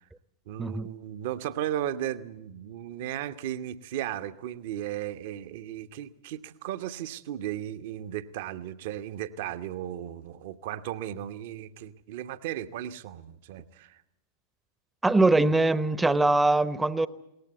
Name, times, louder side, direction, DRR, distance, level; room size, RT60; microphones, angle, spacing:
voice 1, 0.5-14.0, right 11 dB, 50° right, 0.9 m, -35 dB
voice 2, 15.0-17.1, right 2 dB, 10° right, 0.9 m, -22 dB
21.0 x 18.5 x 8.0 m
figure-of-eight pair, 90°, 0 cm